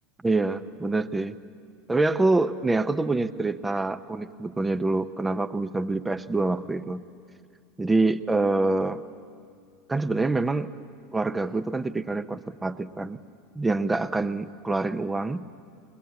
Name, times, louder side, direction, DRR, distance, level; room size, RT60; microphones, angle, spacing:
voice 1, 0.2-1.4 1.9-7.0 7.8-9.0 9.9-10.7 11.1-13.2 13.6-15.5, right 2 dB, 15° right, 11 dB, 0.8 m, -26 dB
22.0 x 21.5 x 8.5 m, 2.2 s
figure-of-eight pair, 75°, 0 cm